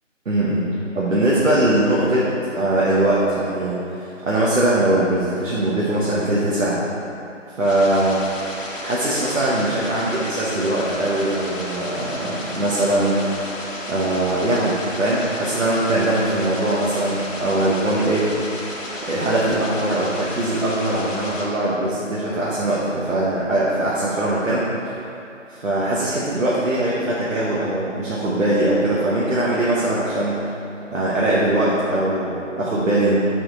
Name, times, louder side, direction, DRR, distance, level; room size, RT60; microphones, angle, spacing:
voice 1, 0.2-6.8 7.6-8.2 8.8-13.2 13.9-18.3 19.1-24.9 25.5-30.4 30.9-33.2, right 1 dB, 80° right, -7 dB, 1.3 m, -21 dB
sound 1, 7.6-21.4, left 1 dB, 80° left, 1.4 m, -33 dB
6.4 x 4.4 x 3.9 m, 2.7 s
figure-of-eight pair, 170°, 38 cm